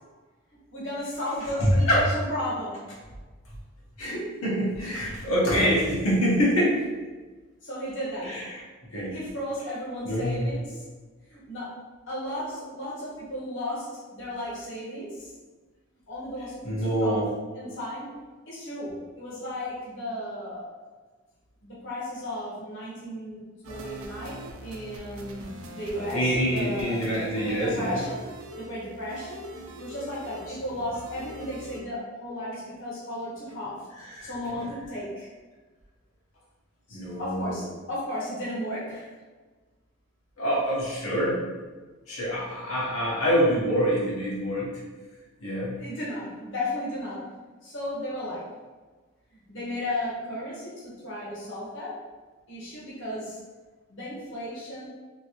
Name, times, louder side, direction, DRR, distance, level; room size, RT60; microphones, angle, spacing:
voice 1, 0.7-2.8 7.6-8.4 8.9-10.8 11.3-11.8 12.1-15.3 16.1-17.2 17.5-18.1 18.5-20.7 21.6-23.4 23.6-27.0 27.3-28.2 28.5-29.5 29.8-33.8 34.2-35.3 36.9-39.1 42.7-42.8 45.7-47.3 47.6-48.5 49.3-52.0 52.5-53.4 53.9-54.9, left 1 dB, 60° left, -7 dB, 1.0 m, -34 dB
voice 2, 1.6-2.1 4.0-6.8 8.2-8.6 8.9-9.2 10.0-10.5 16.6-17.3 25.9-28.0 30.5-30.6 34.0-34.7 36.9-37.7 40.4-41.4 42.1-44.8 45.4-45.8, equal, 85° left, -8 dB, 1.1 m, -26 dB
sound 1, 23.6-31.8, right 1 dB, 80° right, 0.5 m, -43 dB
3.0 x 2.8 x 2.9 m, 1.3 s
head